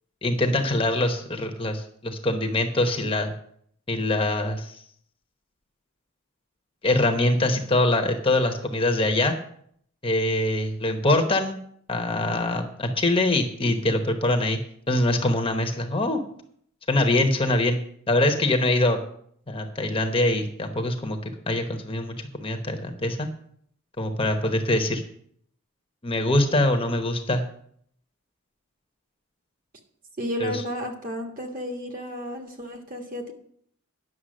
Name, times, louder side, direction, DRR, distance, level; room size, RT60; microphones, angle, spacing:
voice 1, 0.2-3.3 3.9-4.7 6.8-9.3 10.0-11.6 11.9-14.6 14.9-16.2 16.9-17.8 18.1-19.0 19.5-21.2 21.5-23.3 24.0-25.0 26.0-27.4 30.4-30.6, left 1 dB, 25° left, 5 dB, 1.0 m, -23 dB
voice 2, 30.2-33.3, equal, 40° right, 3 dB, 1.5 m, -32 dB
10.0 x 6.9 x 6.4 m, 0.65 s
head